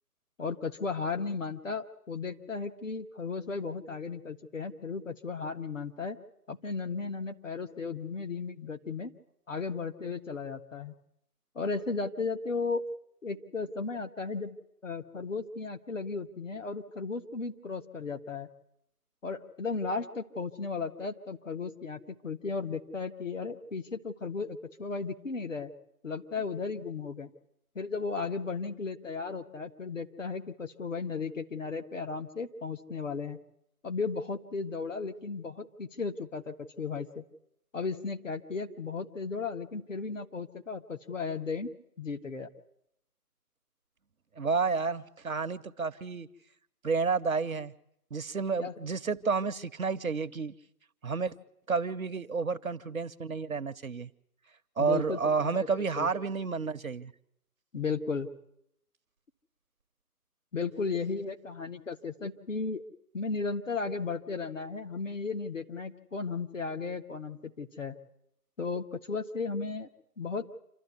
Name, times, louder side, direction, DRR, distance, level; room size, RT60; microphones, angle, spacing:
voice 1, 0.4-6.2 6.5-9.1 9.5-10.9 11.5-12.8 13.2-14.5 14.8-18.5 19.2-25.7 26.0-27.3 27.7-33.4 33.8-37.2 37.7-41.7 42.0-42.5 48.6-48.7 54.8-55.7 56.0-56.1 57.7-58.3 60.5-62.8 63.1-67.9 68.6-69.9 70.2-70.6, left 4 dB, 50° left, 5 dB, 1.6 m, -35 dB
voice 2, 44.4-46.3 46.8-47.7 48.1-50.5 51.0-51.4 51.7-54.1 54.8-57.1, right 5 dB, 60° right, 12 dB, 0.9 m, -30 dB
27.5 x 12.5 x 9.6 m, 0.79 s
figure-of-eight pair, 160°, 48 cm